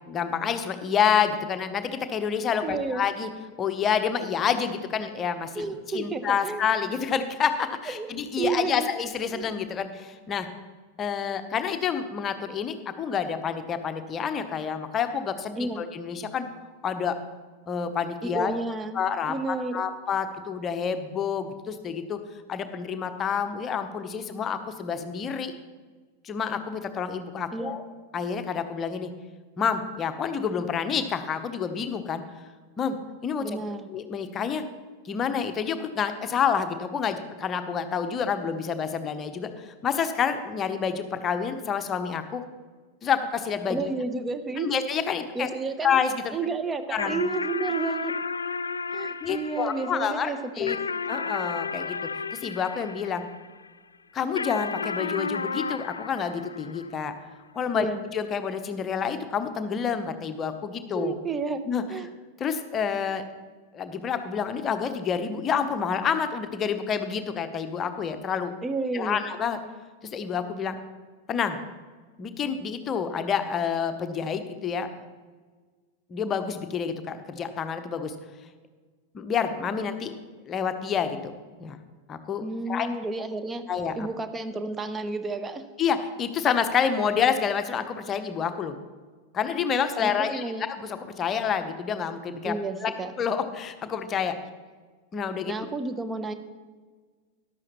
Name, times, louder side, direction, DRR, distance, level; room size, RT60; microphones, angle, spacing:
voice 1, 0.1-3.3 3.6-5.7 5.9-10.5 11.0-16.5 16.8-17.1 17.7-18.5 18.9-22.2 22.5-25.5 26.2-27.8 28.1-29.1 29.6-32.2 32.8-33.0 33.2-33.6 33.9-34.6 35.0-42.4 43.0-43.9 44.6-45.5 45.8-46.4 46.9-47.2 49.2-50.8 51.1-52.0 52.3-53.3 54.1-57.1 57.5-57.9 58.1-61.1 61.7-61.8 62.4-63.2 63.7-68.5 68.9-69.6 70.1-70.8 71.3-71.6 72.2-75.0 76.1-78.1 79.1-80.1 80.5-81.8 82.1-82.9 83.7-84.1 85.8-88.7 89.3-92.5 92.8-92.9 93.2-94.3 95.1-95.5, left 7 dB, 25° left, 9 dB, 0.9 m, -28 dB
voice 2, 2.6-3.1 5.5-6.6 7.9-8.1 8.4-8.9 9.3-9.5 15.6-15.8 18.2-19.0 19.3-19.9 27.5-27.7 33.4-33.9 43.7-44.7 45.3-46.0 46.3-48.1 48.9-50.8 57.7-58.0 60.9-61.6 61.9-62.1 68.6-69.2 82.4-83.6 84.0-85.6 90.0-90.6 92.4-93.1 95.5-96.3, right 3 dB, 15° right, 10 dB, 0.9 m, -31 dB
sound 1, 47.0-53.7 54.4-57.2, left 4 dB, 75° left, 0.3 m, -33 dB
13.5 x 11.5 x 3.1 m, 1.4 s
figure-of-eight pair, 90°, 0 cm